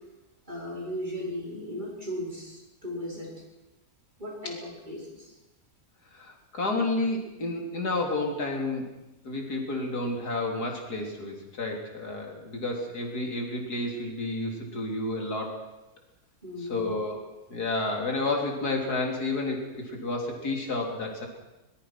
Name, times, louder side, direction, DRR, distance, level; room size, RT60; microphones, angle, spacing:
voice 1, 0.5-3.3 4.2-5.3 16.4-16.9, left 1 dB, 30° right, -2 dB, 4.9 m, -36 dB
voice 2, 6.1-8.9 9.2-15.6 16.6-17.2 17.5-21.3, left 2 dB, 80° left, 1 dB, 4.1 m, -30 dB
22.5 x 20.5 x 6.0 m, 0.97 s
omnidirectional pair, 1.6 m